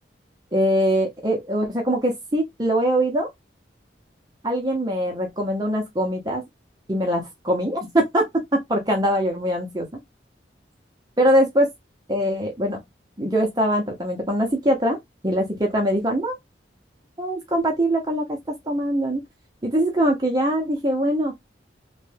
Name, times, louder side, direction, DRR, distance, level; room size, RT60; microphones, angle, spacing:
voice 1, 0.5-3.3 4.4-6.4 6.9-8.3 8.7-9.9 11.2-11.7 12.1-12.8 13.2-15.0 15.2-16.4 17.2-18.4 18.7-19.2 19.6-21.3, equal, 20° right, 0.7 m, -22 dB
3.1 x 2.2 x 3.2 m
head